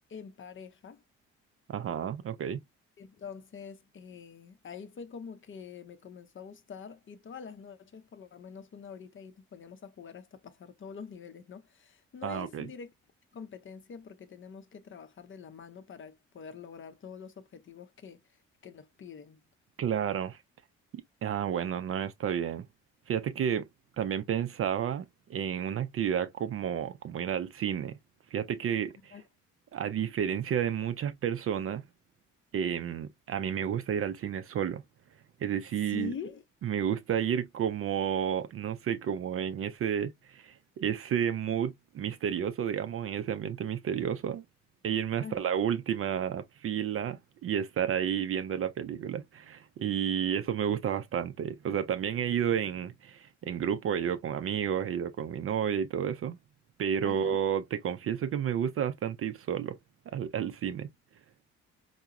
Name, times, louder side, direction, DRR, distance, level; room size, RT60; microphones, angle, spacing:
voice 1, 0.1-1.0 3.0-12.9 13.3-18.2 18.6-19.4 29.1-29.2 35.8-36.4 45.2-45.4 57.0-57.4, left 6 dB, 30° left, 0.6 m, -45 dB
voice 2, 1.7-2.6 12.2-12.7 19.8-20.4 20.9-22.7 23.1-23.7 24.0-28.0 28.3-29.1 29.7-31.8 32.5-34.8 35.4-36.1 36.6-44.4 44.8-56.4 56.8-59.8 60.1-60.9, right 9 dB, 35° right, 0.5 m, -31 dB
4.5 x 2.1 x 2.2 m
hypercardioid pair, 45°, 38 cm